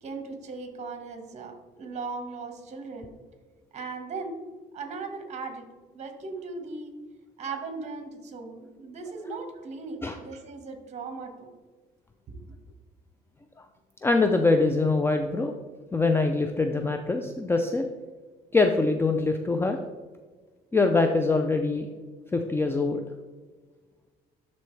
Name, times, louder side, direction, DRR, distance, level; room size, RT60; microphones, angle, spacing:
voice 1, 0.0-3.1 3.7-4.3 4.7-5.7 5.9-6.9 7.4-11.5 12.3-12.4, right 4 dB, 40° right, 5 dB, 1.5 m, -38 dB
voice 2, 14.0-15.5 15.9-17.9 18.5-19.8 20.7-21.9 22.3-23.0, left 3 dB, 15° left, 5 dB, 0.4 m, -23 dB
11.5 x 4.1 x 3.2 m, 1.4 s
cardioid pair, 110°, 17 cm